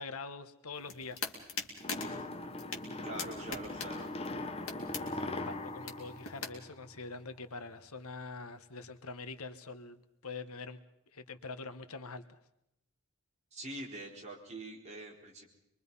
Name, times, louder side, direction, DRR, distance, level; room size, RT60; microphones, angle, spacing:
voice 1, 0.0-1.4 5.0-10.8 11.1-12.4, left 3 dB, 80° left, 10 dB, 1.4 m, -44 dB
sound 1, 0.7-6.5, left 5 dB, 60° left, 3.0 m, -43 dB
sound 2, 1.8-7.2, left 2 dB, 25° left, 1.1 m, -40 dB
voice 2, 3.0-4.1 13.5-15.5, right 1 dB, 30° right, -1 dB, 4.3 m, -44 dB
25.0 x 23.0 x 5.6 m, 0.82 s
head